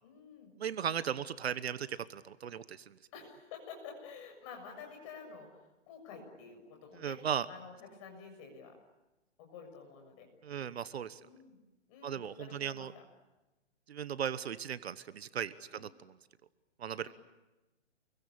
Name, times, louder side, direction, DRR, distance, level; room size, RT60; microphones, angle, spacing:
voice 1, 0.0-0.5 3.1-7.2 7.5-8.7 9.4-10.3 11.2-11.6 11.9-13.0 15.7-15.8 17.0-17.1, left 5 dB, 30° left, 3 dB, 7.0 m, -50 dB
voice 2, 0.6-2.9 7.0-7.5 10.4-11.2 12.0-12.9 13.9-16.1 16.8-17.1, right 8 dB, 60° right, 14 dB, 1.2 m, -37 dB
29.0 x 23.0 x 8.7 m, 1.0 s
hypercardioid pair, 165°, 36 cm